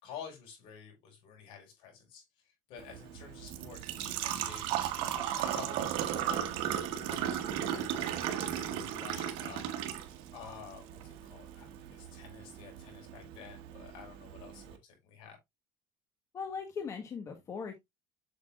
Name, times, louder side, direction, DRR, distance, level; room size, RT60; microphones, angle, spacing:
voice 1, 0.0-2.2 2.7-9.7 10.3-15.4, left 7 dB, 65° left, 5.1 m, -50 dB
Engine / Trickle dribble / Fill (with liquid), 2.8-14.8, right 10 dB, 70° right, 1.5 m, -36 dB
voice 2, 16.3-17.8, left 6 dB, 30° left, 1.3 m, -39 dB
7.7 x 7.0 x 2.3 m
cardioid pair, 135°, 10 cm